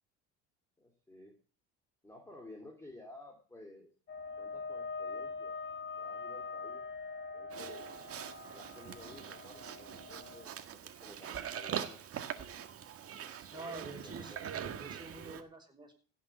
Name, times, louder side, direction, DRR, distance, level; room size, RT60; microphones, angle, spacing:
voice 1, 0.8-1.4 2.0-3.9 4.4-5.5 5.9-6.8 7.3-7.8 8.5-12.2 13.8-14.4, left 2 dB, 10° left, 2 dB, 2.8 m, -54 dB
sound 1, 4.1-10.4, left 4 dB, 30° left, 1.9 m, -43 dB
Livestock farm animals working animals, 7.5-15.4, right 8 dB, 40° right, 1.8 m, -43 dB
voice 2, 13.5-15.9, right 2 dB, 15° right, 3 dB, 5.6 m, -48 dB
16.5 x 7.0 x 7.1 m, 0.40 s
supercardioid pair, 95°, 34 cm